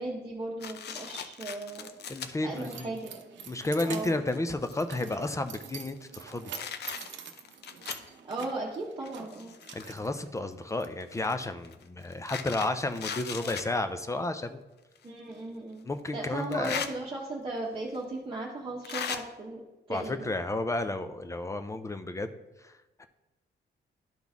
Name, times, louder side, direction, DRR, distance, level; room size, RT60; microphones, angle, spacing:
voice 1, 0.0-1.9 2.4-3.2 3.8-4.2 8.2-9.5 13.4-13.5 15.0-15.9 16.1-19.6 19.9-20.3, right 2 dB, 30° right, -4 dB, 1.0 m, -37 dB
sound 1, 0.6-2.3 3.0-3.1 3.8-3.9 4.2-5.6 6.1-8.1 9.0-10.1 11.1-13.7 15.0-15.1 16.4-16.9 17.9-18.0 18.8-19.2, left 7 dB, 65° left, 0.6 m, -38 dB
Keys jangling, 1.9-10.8, right 7 dB, 80° right, 0.7 m, -46 dB
voice 2, 2.1-2.9 3.5-6.5 9.7-14.7 15.8-16.8 19.9-22.3 22.6-23.1, left 2 dB, 15° left, 9 dB, 0.4 m, -32 dB
11.5 x 4.0 x 3.5 m, 1.1 s
cardioid pair, 145°, 19 cm